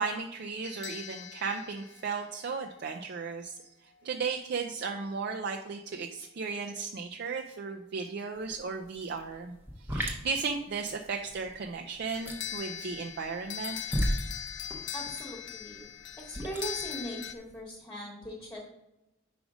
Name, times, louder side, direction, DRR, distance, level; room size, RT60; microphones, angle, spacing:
voice 1, 0.0-13.8, right 5 dB, 60° right, 3 dB, 0.4 m, -35 dB
sound 1, 0.6-2.9 12.1-17.3, left 10 dB, 65° left, 0.5 m, -41 dB
sound 2, 8.4-8.6 8.9-17.6, equal, 10° right, 0.8 m, -35 dB
voice 2, 14.9-15.8 16.2-18.6, right 1 dB, 15° left, -3 dB, 1.2 m, -40 dB
5.1 x 4.9 x 4.9 m, 0.95 s
head